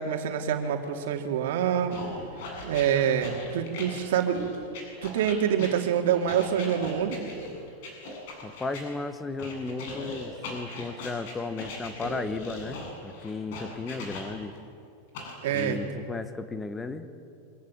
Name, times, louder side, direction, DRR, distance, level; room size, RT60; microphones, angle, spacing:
voice 1, 0.0-2.0 2.6-4.4 5.0-7.2 15.4-15.8, right 9 dB, 70° right, 3 dB, 3.1 m, -26 dB
sound 1, 1.9-8.8 9.4-14.6 15.1-15.6, left 2 dB, 55° left, 7.6 m, -39 dB
voice 2, 8.4-14.6 15.5-17.1, left 3 dB, 10° left, 10 dB, 1.2 m, -35 dB
25.0 x 25.0 x 8.7 m, 2.5 s
supercardioid pair, 175°, 0 cm